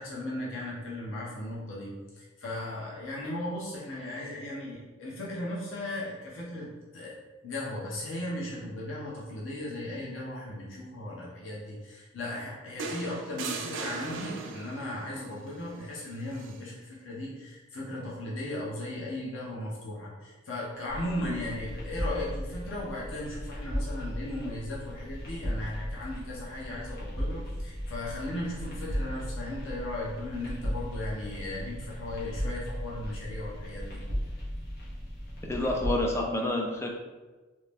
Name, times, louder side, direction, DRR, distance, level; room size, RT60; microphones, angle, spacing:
voice 1, 0.0-7.1 7.4-34.0, left 1 dB, 90° left, -5 dB, 0.9 m, -37 dB
sound 1, 12.8-14.9 16.3-16.6, right 4 dB, 70° right, 0.4 m, -37 dB
sound 2, 20.9-36.1, equal, 50° left, 1.0 m, -36 dB
voice 2, 35.4-36.9, left 1 dB, 15° left, 0 dB, 0.4 m, -28 dB
3.0 x 2.8 x 3.4 m, 1.2 s
head